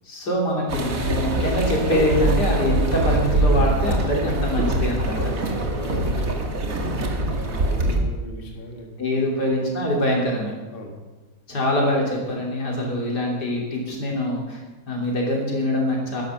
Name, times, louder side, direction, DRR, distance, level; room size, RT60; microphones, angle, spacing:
voice 1, 0.1-5.2 9.0-10.5 11.5-14.6 14.9-16.2, left 1 dB, 85° left, -1 dB, 3.7 m, -24 dB
sound 1, 0.7-8.0, right 2 dB, 55° right, 1.9 m, -23 dB
voice 2, 5.1-9.2 10.7-10.9, equal, 35° left, 1 dB, 1.8 m, -36 dB
12.0 x 11.0 x 6.5 m, 1.2 s
omnidirectional pair, 1.7 m